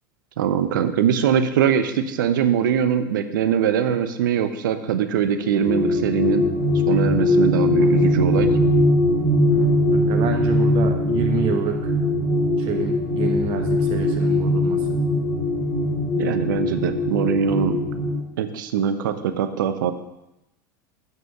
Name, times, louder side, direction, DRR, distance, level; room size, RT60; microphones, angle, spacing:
voice 1, 0.4-6.4 6.9-8.5 16.2-17.8 18.4-19.9, right 8 dB, 75° right, 10 dB, 0.8 m, -22 dB
sound 1, 5.4-18.2, left 1 dB, 35° left, 2.4 m, -21 dB
voice 2, 9.9-11.9 12.6-15.0, right 8 dB, 50° right, 3 dB, 1.1 m, -28 dB
7.7 x 6.1 x 7.1 m, 0.91 s
hypercardioid pair, 85°, 11 cm